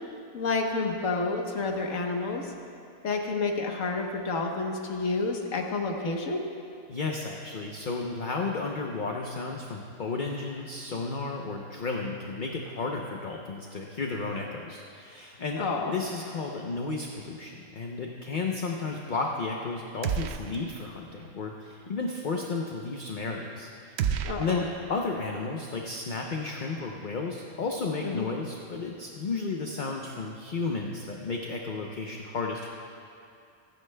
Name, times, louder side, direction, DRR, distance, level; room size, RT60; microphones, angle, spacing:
voice 1, 0.3-2.5 3.0-6.4 15.5-15.9 24.2-24.6 28.0-28.3, left 3 dB, 80° left, 1 dB, 1.5 m, -29 dB
voice 2, 6.9-23.9 24.4-32.7, left 3 dB, 45° left, 0 dB, 0.8 m, -33 dB
sound 1, 20.0-20.9 21.2-21.3 24.0-25.3, right 8 dB, 65° right, 0.7 m, -32 dB
27.5 x 9.7 x 2.2 m, 2.5 s
omnidirectional pair, 1.3 m